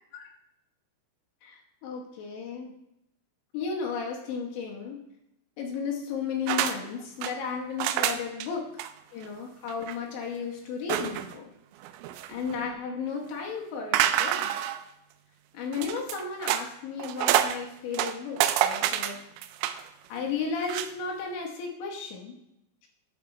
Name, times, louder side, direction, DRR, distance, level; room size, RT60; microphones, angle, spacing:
voice 1, 1.4-2.7 3.5-5.0 5.6-8.8 9.1-11.5 12.3-14.5 15.5-19.2 20.1-22.4, left 5 dB, 75° left, -1 dB, 3.2 m, -34 dB
sound 1, 6.5-6.8 7.0-7.3 7.8-8.5 8.8-8.9 9.2-9.3 9.7-10.0 10.9-11.4 11.8-12.6 13.9-14.8 15.7-16.7 17.0-17.6 17.9-19.9 20.6-20.9, right 12 dB, 85° right, 2.9 m, -27 dB
11.0 x 5.7 x 3.1 m, 0.83 s
omnidirectional pair, 5.9 m